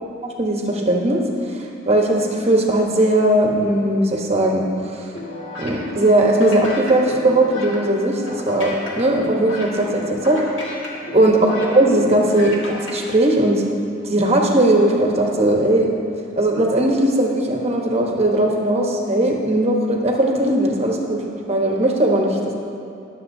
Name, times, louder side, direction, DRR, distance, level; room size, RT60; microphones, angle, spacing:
voice 1, 0.2-5.1 5.6-10.4 11.1-11.4 11.7-13.6 14.0-15.9 16.4-21.2 21.5-22.3, right 1 dB, 30° right, 0 dB, 1.1 m, -18 dB
sound 1, 5.1-13.0, left 1 dB, 65° left, 2.0 m, -33 dB
20.5 x 7.2 x 2.7 m, 2.6 s
head